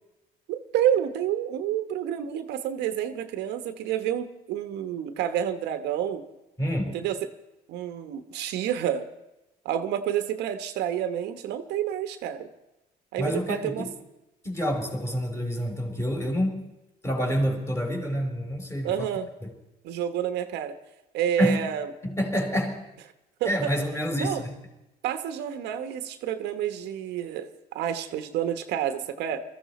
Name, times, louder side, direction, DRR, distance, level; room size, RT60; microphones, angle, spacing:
voice 1, 0.5-6.2 6.9-7.2 7.7-9.1 9.6-12.5 13.1-13.9 18.8-19.3 19.8-20.8 21.1-21.9 23.4-23.7 24.2-24.4 25.0-29.4, right 10 dB, 85° right, 9 dB, 1.1 m, -29 dB
voice 2, 6.6-7.0 13.2-13.9 14.4-16.6 17.0-19.1 19.4-19.5 21.4-21.7 22.0-22.8 23.4-24.6, equal, 15° left, 2 dB, 3.9 m, -27 dB
21.5 x 14.0 x 4.2 m, 0.95 s
cardioid pair, 110°, 17 cm